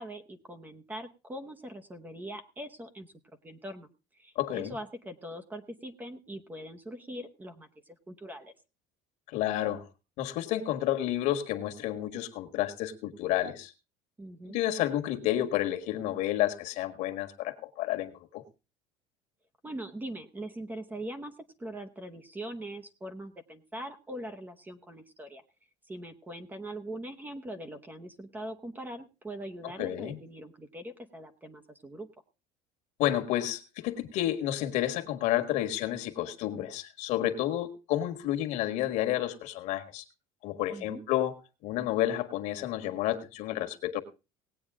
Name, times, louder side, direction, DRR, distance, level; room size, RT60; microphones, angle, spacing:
voice 1, 0.0-3.1 3.4-8.5 14.2-14.6 19.6-25.4 25.8-32.1 40.7-41.0, right 1 dB, 10° right, 9 dB, 0.9 m, -42 dB
voice 2, 4.3-4.7 9.3-9.8 10.2-13.7 14.5-18.4 29.8-30.2 33.0-40.0 40.4-41.4 41.6-44.0, left 13 dB, 55° left, 6 dB, 1.5 m, -30 dB
18.5 x 8.7 x 3.6 m, 0.29 s
cardioid pair, 160°, 15 cm